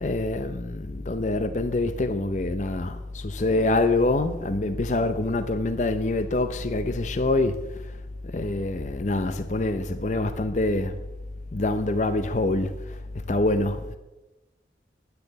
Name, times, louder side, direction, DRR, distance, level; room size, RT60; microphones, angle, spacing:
voice 1, 0.0-7.6 8.3-10.9 11.5-12.7 13.3-14.0, left 2 dB, 40° left, 0.5 m, -25 dB
10.0 x 6.9 x 7.8 m
head